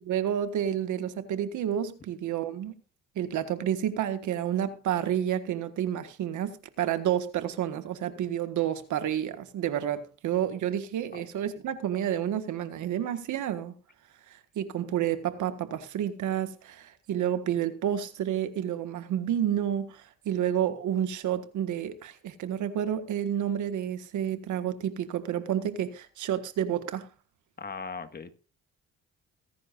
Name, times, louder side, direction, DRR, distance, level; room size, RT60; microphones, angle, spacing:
voice 1, 0.0-2.8 3.2-13.7 14.3-27.1, right 10 dB, 80° right, 1.6 m, -30 dB
voice 2, 27.6-28.3, left 5 dB, 30° left, 1.7 m, -38 dB
22.5 x 10.5 x 2.5 m
cardioid pair, 90°, 30 cm